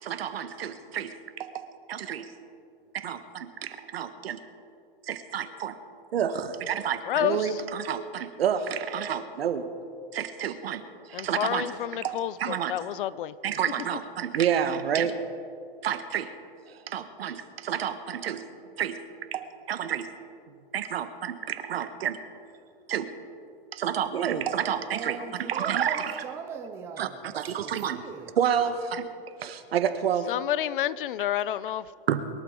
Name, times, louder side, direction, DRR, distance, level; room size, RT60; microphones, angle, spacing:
voice 1, 0.0-2.3 2.9-4.4 5.1-5.8 6.1-9.7 10.1-10.8 11.1-12.7 13.4-15.2 15.8-16.3 16.7-18.5 18.8-19.0 19.3-20.1 20.7-22.2 22.9-23.1 23.7-26.2 27.0-27.1 27.3-28.0 28.4-29.0 29.4-30.3 32.1-32.2, right 8 dB, 75° right, 10 dB, 1.4 m, -29 dB
voice 2, 7.1-7.6 11.1-13.3 30.3-31.9, left 12 dB, 60° left, 18 dB, 0.6 m, -29 dB
voice 3, 24.9-27.3 27.6-28.3, right 6 dB, 10° right, 5 dB, 0.5 m, -40 dB
23.0 x 12.0 x 3.9 m, 2.5 s
hypercardioid pair, 165°, 30 cm